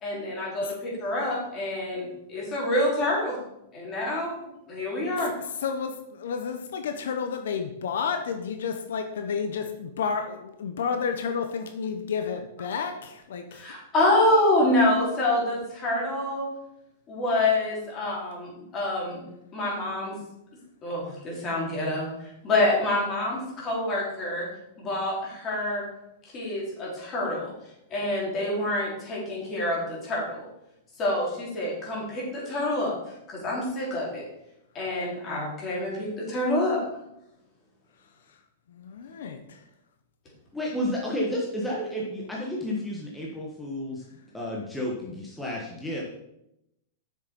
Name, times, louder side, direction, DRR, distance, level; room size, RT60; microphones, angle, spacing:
voice 1, 0.0-3.4 3.7-5.3 13.5-16.5 17.1-20.1 20.8-22.1 22.4-24.5 24.8-25.9 26.3-27.5 27.9-30.5 31.0-32.9 33.3-34.2 34.7-36.8, left 1 dB, 25° left, -4 dB, 3.9 m, -27 dB
voice 2, 5.2-13.7 38.3-38.4 38.7-39.6, left 6 dB, 80° left, 7 dB, 0.9 m, -31 dB
voice 3, 40.5-44.0 44.3-46.0, left 1 dB, 5° left, -4 dB, 1.4 m, -31 dB
7.5 x 6.6 x 5.3 m, 0.84 s
supercardioid pair, 145°, 0 cm